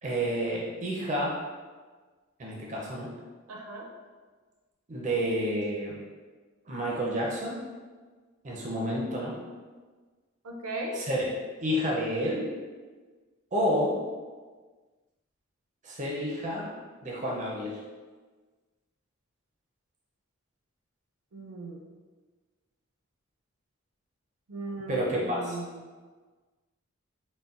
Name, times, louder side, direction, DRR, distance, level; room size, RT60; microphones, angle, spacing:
voice 1, 0.0-1.4 2.4-3.1 4.9-6.0 6.7-7.6 8.4-9.3 10.9-11.2 11.6-12.4 13.5-14.0 15.8-16.7 17.0-17.8 24.9-25.6, equal, 35° right, -3 dB, 0.4 m, -29 dB
voice 2, 3.5-3.9 10.4-11.0 21.3-21.8 24.5-25.8, right 2 dB, 85° right, -1 dB, 0.5 m, -37 dB
3.9 x 2.1 x 2.3 m, 1.4 s
head